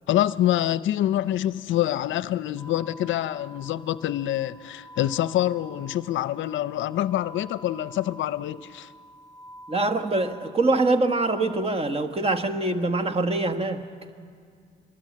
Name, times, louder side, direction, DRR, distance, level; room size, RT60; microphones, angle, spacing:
voice 1, 0.1-8.9, left 13 dB, 75° left, 0.6 m, -26 dB
sound 1, 2.6-11.6, right 1 dB, ahead, 5.1 m, -48 dB
voice 2, 9.7-13.8, right 2 dB, 30° right, 1.5 m, -24 dB
25.0 x 22.0 x 8.6 m
cardioid pair, 90°, 20 cm